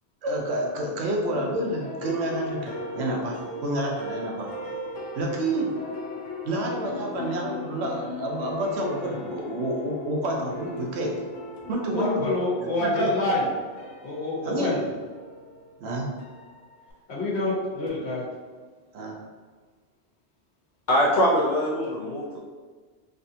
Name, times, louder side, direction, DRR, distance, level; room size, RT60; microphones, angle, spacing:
voice 1, 0.2-3.4 3.6-4.5 5.1-5.7 6.4-11.1 11.7-12.3 12.6-13.1 14.4-14.7 15.8-16.1 18.9-19.2, right 1 dB, 70° right, 0 dB, 0.8 m, -29 dB
sound 1, 1.3-16.9, left 2 dB, 85° left, 0.9 m, -38 dB
voice 2, 11.9-13.4 14.0-14.8 17.1-18.2, left 2 dB, 65° left, -7 dB, 1.3 m, -26 dB
voice 3, 20.9-22.4, equal, 50° left, -5 dB, 0.6 m, -23 dB
3.2 x 2.5 x 2.7 m, 1.5 s
omnidirectional pair, 1.2 m